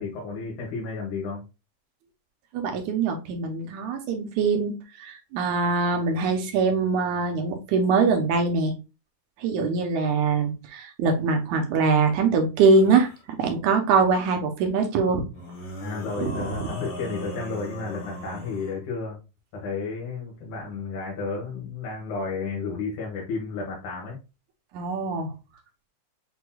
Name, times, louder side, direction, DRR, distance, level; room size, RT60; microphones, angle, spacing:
voice 1, 0.0-1.4 15.8-19.2 19.5-24.2, left 4 dB, 75° left, -4 dB, 2.7 m, -32 dB
voice 2, 2.5-8.7 9.4-13.1 13.4-15.3 16.2-16.5 24.7-25.3, right 4 dB, 75° right, 4 dB, 2.3 m, -23 dB
sound 1, 12.7-13.2 15.3-18.8, equal, 45° left, 1.3 m, -38 dB
7.8 x 2.9 x 2.2 m, 0.29 s
omnidirectional pair, 3.5 m